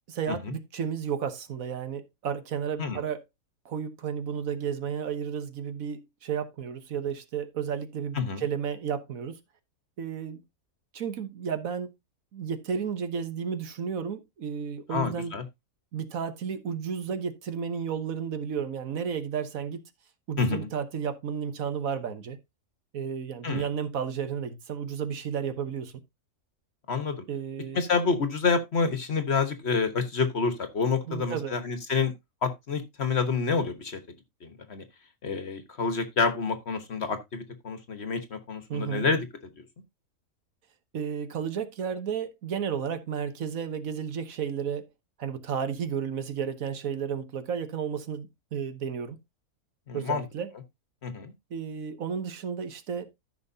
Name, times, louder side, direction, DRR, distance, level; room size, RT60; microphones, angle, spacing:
voice 1, 0.1-3.2 3.6-9.4 10.0-10.4 10.9-11.9 12.3-15.4 15.9-19.9 20.3-22.4 22.9-26.0 27.3-27.8 31.1-31.6 38.7-39.1 40.9-44.9 45.2-49.2 49.9-50.5 51.5-53.1, right 7 dB, 70° right, 1.4 m, -32 dB
voice 2, 14.9-15.4 20.4-20.7 23.4-23.7 26.9-27.2 27.7-32.1 32.4-34.0 34.4-34.8 35.2-39.3 49.9-50.2 51.0-51.3, left 5 dB, 50° left, 1.4 m, -28 dB
13.5 x 6.0 x 2.7 m
omnidirectional pair, 1.5 m